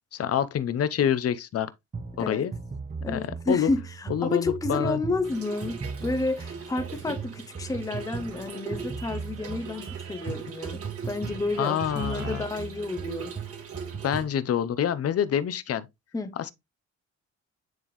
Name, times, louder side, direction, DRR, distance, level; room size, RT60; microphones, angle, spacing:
voice 1, 0.1-1.7 2.2-2.5 3.1-3.7 4.1-5.0 11.6-12.4 14.0-15.9, left 9 dB, 50° left, 0.8 m, -27 dB
sound 1, 1.9-14.4, right 5 dB, 25° right, 0.9 m, -38 dB
voice 2, 3.0-13.3 16.1-16.3, left 2 dB, 10° left, 0.8 m, -30 dB
Trickle dribble / Fill (with liquid), 5.2-14.2, right 5 dB, 50° right, 2.0 m, -42 dB
sound 2, 5.6-13.4, right 7 dB, 80° right, 1.6 m, -51 dB
9.2 x 3.6 x 3.1 m
cardioid pair, 90°, 30 cm